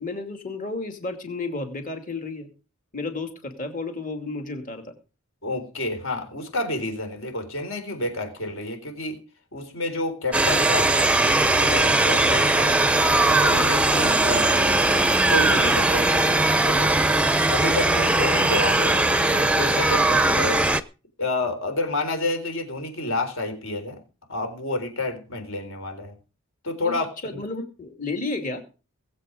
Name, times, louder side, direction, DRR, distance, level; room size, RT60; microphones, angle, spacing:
voice 1, 0.0-2.5 2.9-4.9 26.8-26.9 27.2-28.6, left 3 dB, 40° left, 5 dB, 2.6 m, -32 dB
voice 2, 5.4-9.2 9.5-12.8 13.1-14.8 15.3-17.0 17.5-20.6 21.2-24.0 24.3-26.1 26.6-27.4, left 2 dB, 65° left, 6 dB, 4.0 m, -30 dB
sound 1, 10.3-20.8, right 2 dB, 5° right, 0.6 m, -20 dB
20.5 x 8.1 x 5.0 m, 0.35 s
head